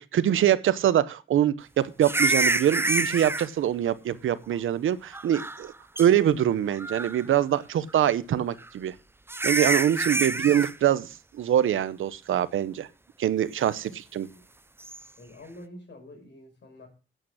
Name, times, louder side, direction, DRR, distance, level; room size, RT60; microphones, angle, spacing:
voice 1, 0.0-5.7 6.0-8.9 9.4-11.1 11.3-12.9 13.2-14.3, right 10 dB, 90° right, 16 dB, 0.8 m, -24 dB
sound 1, 2.0-3.5 5.1-5.7 6.0-6.1 6.7-7.2 8.6-8.7 9.3-10.7 14.8-15.0, right 2 dB, 10° right, 0.5 m, -27 dB
voice 2, 10.2-10.5 13.8-14.5 15.2-16.9, left 1 dB, 65° left, 4 dB, 5.5 m, -48 dB
8.9 x 8.6 x 6.2 m, 0.34 s
cardioid pair, 80°, 20 cm